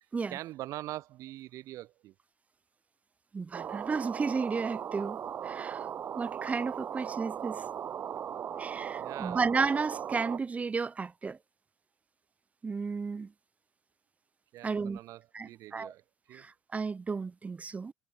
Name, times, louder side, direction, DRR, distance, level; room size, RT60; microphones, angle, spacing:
voice 1, 0.3-2.1 8.9-9.4 14.5-16.5, right 15 dB, 55° right, 4.2 m, -43 dB
voice 2, 3.3-5.9 6.2-7.6 8.6-11.4 12.6-13.3 14.6-15.0 15.3-15.9 16.3-17.9, right 4 dB, 20° right, 1.8 m, -33 dB
sound 1, 3.5-10.4, right 9 dB, 35° right, 1.0 m, -38 dB
supercardioid pair, 100°, 7 cm